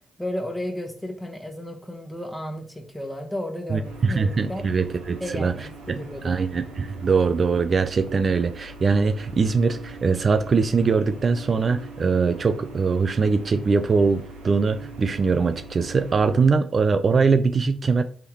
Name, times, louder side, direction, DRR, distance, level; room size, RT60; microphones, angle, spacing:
voice 1, 0.2-4.7 5.2-6.4, left 1 dB, 10° left, 3 dB, 1.2 m, -33 dB
voice 2, 3.7-5.5 5.9-18.0, right 4 dB, 50° right, 9 dB, 0.3 m, -22 dB
sound 1, 3.8-16.3, right 2 dB, 85° right, 1.4 m, -42 dB
3.5 x 3.4 x 3.0 m, 0.44 s
hypercardioid pair, 40°, 0 cm